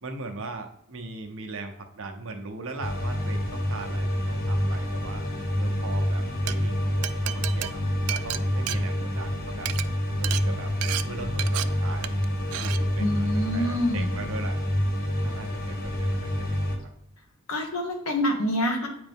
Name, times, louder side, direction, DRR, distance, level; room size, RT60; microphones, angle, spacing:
voice 1, 0.0-5.2 5.6-9.7 10.2-10.7 11.1-12.2 12.6-14.6 15.2-16.5, right 3 dB, 65° right, 4 dB, 0.8 m, -39 dB
sound 1, 2.8-16.8, equal, 45° left, 1.2 m, -27 dB
Glass, 6.3-6.5 7.0-9.3 9.6-9.8 10.2-10.4 10.8-11.0 11.4-11.6 12.0-12.3 12.5-12.8, right 13 dB, 85° right, 0.3 m, -31 dB
voice 2, 13.0-14.1 17.5-18.9, left 1 dB, 75° left, 3 dB, 1.3 m, -26 dB
9.1 x 3.4 x 3.5 m, 0.79 s
head